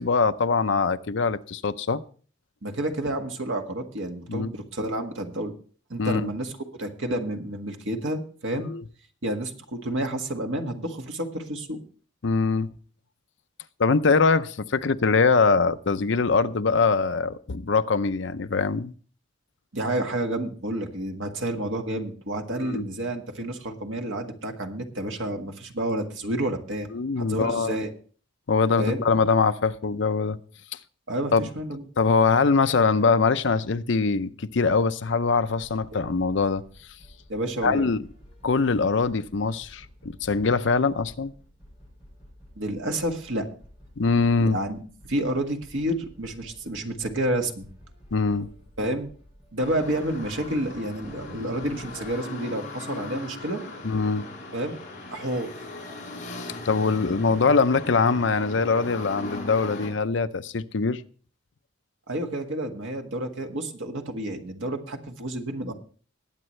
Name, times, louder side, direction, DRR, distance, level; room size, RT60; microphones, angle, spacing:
voice 1, 0.0-2.0 4.3-4.5 6.0-6.3 8.7-8.8 12.2-12.7 13.8-18.9 22.6-22.8 26.9-27.8 28.5-30.4 31.3-31.4 32.0-36.6 37.6-38.0 38.4-41.3 44.0-44.6 48.1-48.5 53.8-54.3 56.6-61.0, left 4 dB, 65° left, 12 dB, 0.6 m, -23 dB
voice 2, 2.6-5.5 5.9-6.5 6.8-8.7 9.2-11.8 19.7-26.9 27.1-27.9 28.8-29.0 31.1-31.8 35.9-36.0 37.3-37.9 42.5-43.5 44.4-44.8 45.1-47.7 48.8-49.1 49.5-53.6 54.5-54.8 55.1-55.5 62.1-65.7, right 1 dB, 70° right, 3 dB, 1.8 m, -30 dB
sound 1, 35.2-52.2, equal, 5° right, 7.1 m, -52 dB
sound 2, 49.6-59.9, left 2 dB, 40° left, 5.0 m, -38 dB
20.0 x 8.8 x 3.2 m, 0.42 s
head